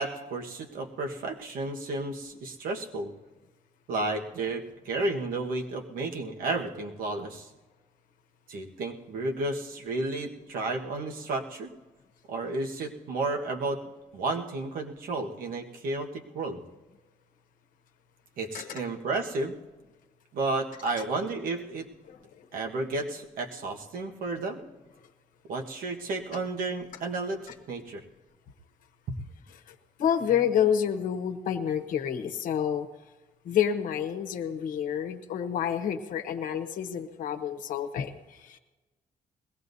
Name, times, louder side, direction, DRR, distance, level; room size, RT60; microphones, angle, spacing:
voice 1, 0.0-3.1 3.9-7.5 8.5-11.7 12.3-13.8 14.1-16.6 18.4-19.5 20.3-21.9 22.5-24.6 25.5-28.0, right 2 dB, 85° right, 2 dB, 1.4 m, -32 dB
voice 2, 22.1-22.5 29.7-32.9 33.4-38.6, left 8 dB, 75° left, 8 dB, 1.0 m, -29 dB
21.0 x 16.5 x 2.7 m, 1.2 s
cardioid pair, 160°, 14 cm